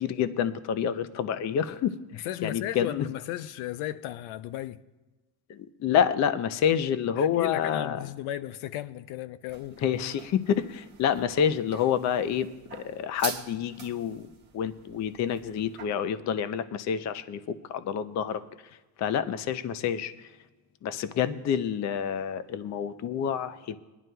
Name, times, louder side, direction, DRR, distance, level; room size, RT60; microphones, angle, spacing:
voice 1, 0.0-3.1 5.5-8.1 9.8-18.4 19.0-20.3 20.8-23.8, left 8 dB, 35° left, 0.4 m, -28 dB
voice 2, 2.1-4.8 7.2-9.8, left 13 dB, 80° left, 0.6 m, -35 dB
sound 1, 9.5-15.9, right 5 dB, 20° right, 1.4 m, -44 dB
22.0 x 11.0 x 2.2 m
cardioid pair, 150°, 49 cm